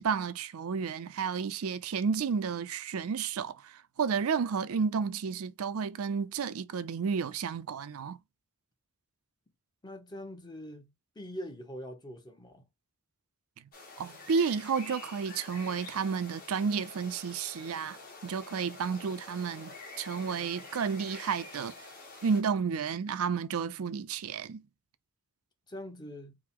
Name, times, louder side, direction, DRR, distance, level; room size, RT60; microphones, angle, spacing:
voice 1, 0.0-8.2 14.0-19.7 20.0-21.7 22.2-24.6, right 6 dB, 85° right, 0.4 m, -31 dB
voice 2, 9.8-12.7 25.7-26.4, equal, 20° left, 0.8 m, -43 dB
sound 1, 13.7-22.4, left 3 dB, 40° left, 1.4 m, -47 dB
4.7 x 2.0 x 3.6 m
head